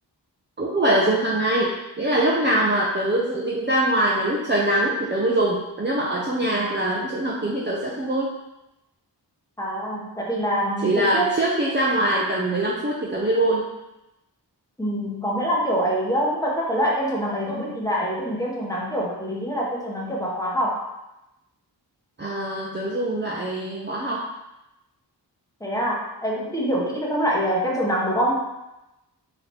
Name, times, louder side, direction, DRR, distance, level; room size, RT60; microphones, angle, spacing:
voice 1, 0.6-8.3 10.8-13.7 22.2-24.2, right 1 dB, 25° right, -5 dB, 0.5 m, -23 dB
voice 2, 9.6-11.3 14.8-20.9 25.6-28.5, equal, 10° left, -4 dB, 0.9 m, -25 dB
3.9 x 2.8 x 3.3 m, 0.94 s
wide cardioid pair, 75°, 42 cm